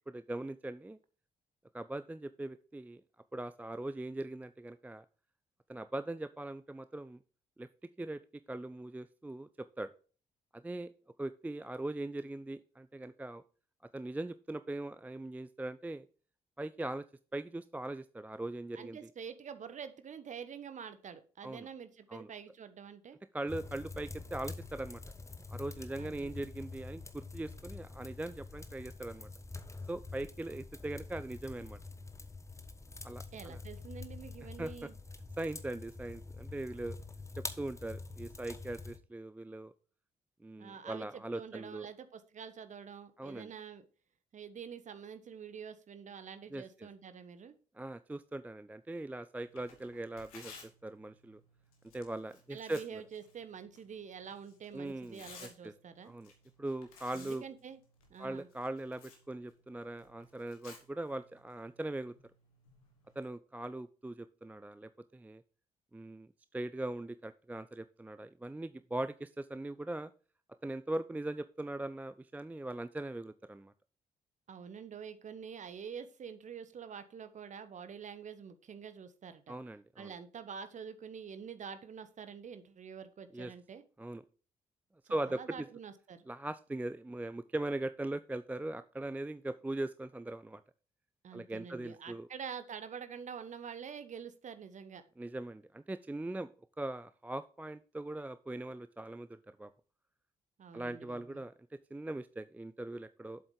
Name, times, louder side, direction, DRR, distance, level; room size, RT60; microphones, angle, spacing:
voice 1, 0.1-1.0 1.7-3.0 3.3-5.0 5.7-7.2 7.6-7.7 8.0-8.2 8.5-9.9 10.5-10.9 11.2-13.4 13.9-16.1 16.6-17.0 17.3-19.0 21.4-21.7 22.1-22.3 23.3-25.0 25.5-29.3 29.9-31.8 33.0-33.6 34.6-34.9 35.4-37.0 37.4-39.7 40.4-41.9 43.2-43.5 46.5-46.9 47.8-51.4 51.9-53.0 54.7-55.7 56.0-56.3 56.6-57.4 58.2-62.1 63.2-65.4 65.9-70.1 70.6-73.7 79.5-80.1 83.3-83.5 84.0-84.2 85.1-85.7 86.3-90.6 91.3-92.3 95.2-96.5 96.8-99.7 100.7-101.5 101.9-103.4, right 2 dB, 10° right, 13 dB, 0.4 m, -40 dB
voice 2, 18.7-23.2 26.0-26.3 33.3-35.0 40.6-43.8 44.3-47.5 52.5-56.1 57.1-57.8 58.1-58.5 74.5-79.5 80.0-83.8 85.0-86.2 91.2-95.0 100.6-101.4, right 7 dB, 40° right, 11 dB, 1.2 m, -47 dB
sound 1, 23.5-39.0, left 3 dB, 15° left, 1.3 m, -46 dB
Tearing, 49.4-63.3, left 4 dB, 75° left, 1.7 m, -58 dB
7.8 x 7.7 x 3.8 m, 0.38 s
figure-of-eight pair, 40°, 18 cm